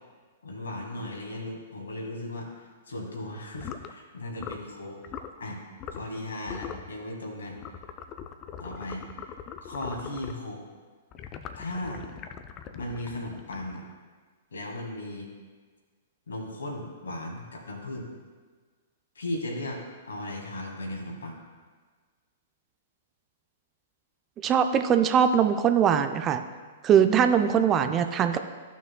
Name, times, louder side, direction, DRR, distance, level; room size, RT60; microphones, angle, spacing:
voice 1, 0.4-5.0 5.4-5.6 5.9-7.6 8.6-10.6 11.6-12.0 12.7-13.8 14.5-15.3 16.3-18.1 19.2-21.4, left 1 dB, 75° left, 1 dB, 1.7 m, -37 dB
sound 1, 3.6-3.9 4.4-4.7 5.0-5.3 5.8-6.2 6.5-6.9 7.6-10.5 11.1-13.9, left 8 dB, 30° left, 0.5 m, -41 dB
voice 2, 24.4-26.4 26.8-28.4, right 8 dB, 25° right, 8 dB, 0.4 m, -21 dB
14.0 x 6.1 x 2.2 m, 1.5 s
figure-of-eight pair, 110°, 0 cm